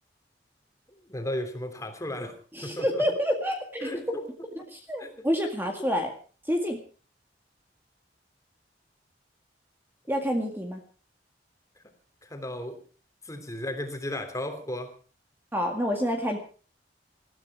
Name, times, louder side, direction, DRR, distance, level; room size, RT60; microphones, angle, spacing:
voice 1, 1.1-2.3 2.6-3.0 3.8-4.2 5.0-5.1 12.2-12.8 13.2-14.9, left 1 dB, 20° left, 6 dB, 2.9 m, -34 dB
voice 2, 2.5-3.9 4.6-6.1 6.5-6.8 10.1-10.8 15.5-16.4, equal, 10° right, 3 dB, 2.0 m, -28 dB
20.5 x 14.0 x 4.7 m, 0.39 s
head